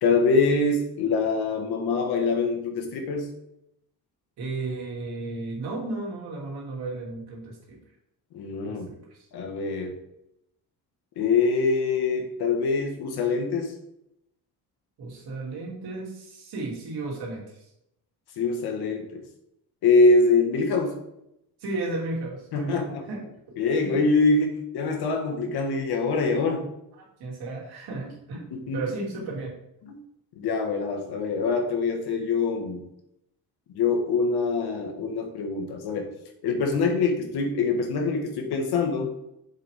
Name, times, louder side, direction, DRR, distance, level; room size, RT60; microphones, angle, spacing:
voice 1, 0.0-3.3 8.3-8.9 9.3-9.9 11.1-13.7 18.4-19.2 19.8-21.0 22.5-23.0 23.6-26.7 28.5-28.8 29.8-30.0 30.4-32.9 33.7-36.1 36.4-39.1, left 4 dB, 85° left, 3 dB, 1.7 m, -24 dB
voice 2, 4.4-7.8 8.7-9.3 15.0-17.7 21.6-23.3 23.8-24.1 27.0-28.5 28.7-29.6, right 2 dB, 80° right, -2 dB, 2.9 m, -34 dB
7.3 x 6.9 x 3.6 m, 0.81 s
cardioid pair, 135°, 38 cm